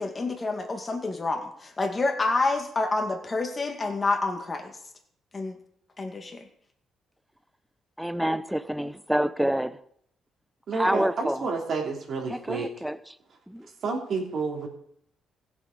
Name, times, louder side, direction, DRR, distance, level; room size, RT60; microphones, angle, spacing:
voice 1, 0.0-4.7 5.3-5.6 6.0-6.5, left 3 dB, 30° left, 4 dB, 2.2 m, -28 dB
voice 2, 8.0-9.8 10.7-11.5 12.3-13.2 13.5-13.7, equal, 5° right, 13 dB, 0.8 m, -28 dB
voice 3, 10.7-12.7 13.8-14.7, right 4 dB, 60° right, 0 dB, 3.3 m, -30 dB
16.0 x 7.4 x 5.4 m, 0.68 s
cardioid pair, 90°, 0 cm